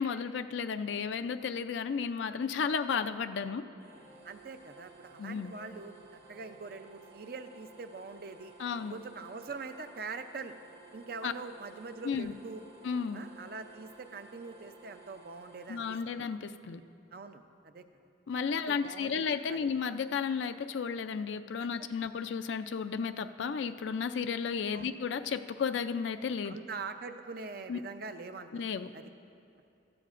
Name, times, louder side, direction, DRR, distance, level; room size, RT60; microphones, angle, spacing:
voice 1, 0.0-3.6 5.2-5.5 8.6-9.0 11.2-11.3 12.0-12.3 12.8-13.2 15.7-16.8 18.3-26.6 27.7-27.8 28.5-28.9, left 6 dB, 75° left, 9 dB, 0.4 m, -33 dB
sound 1, 3.8-15.9, right 3 dB, 70° right, 1.8 m, -55 dB
voice 2, 4.2-8.5 8.9-10.6 10.9-12.6 13.1-15.9 17.1-17.8 18.5-19.6 21.8-21.9 24.7-24.9 26.4-28.5 28.9-29.1, right 4 dB, 50° right, 8 dB, 0.5 m, -43 dB
16.5 x 13.0 x 2.5 m, 2.6 s
head